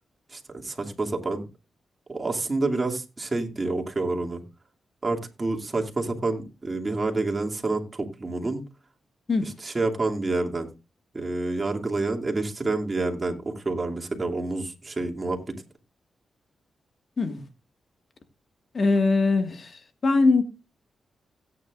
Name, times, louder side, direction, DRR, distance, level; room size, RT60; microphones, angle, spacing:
voice 1, 0.3-1.4 2.1-4.4 5.0-8.6 9.4-10.7 11.1-15.6, right 2 dB, 35° right, 2.6 m, -28 dB
voice 2, 18.7-20.4, left 3 dB, 50° left, 1.8 m, -22 dB
17.0 x 9.2 x 2.5 m
cardioid pair, 60°, 0 cm